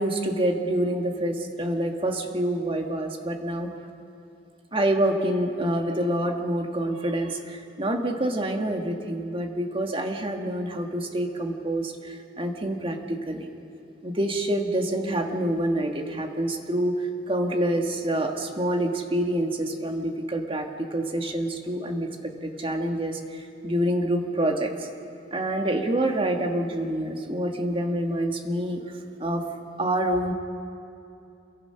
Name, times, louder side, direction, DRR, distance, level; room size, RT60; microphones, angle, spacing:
voice 1, 0.0-3.7 4.7-13.5 14.0-24.9 25.3-29.5 29.8-30.3, right 1 dB, 30° right, 3 dB, 1.8 m, -27 dB
28.5 x 22.0 x 5.8 m, 2.7 s
head